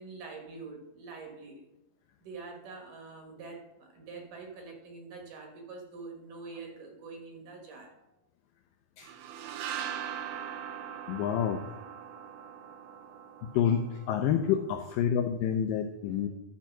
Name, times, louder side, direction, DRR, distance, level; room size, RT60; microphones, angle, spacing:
voice 1, 0.0-1.6 2.2-7.9 16.1-16.3, right 4 dB, 65° right, 2 dB, 2.7 m, -45 dB
sound 1, 9.0-14.7, right 9 dB, 80° right, 2.5 m, -41 dB
voice 2, 11.1-11.7 13.5-16.3, left 8 dB, 85° left, 6 dB, 1.9 m, -28 dB
11.5 x 4.5 x 5.9 m, 0.91 s
omnidirectional pair, 4.5 m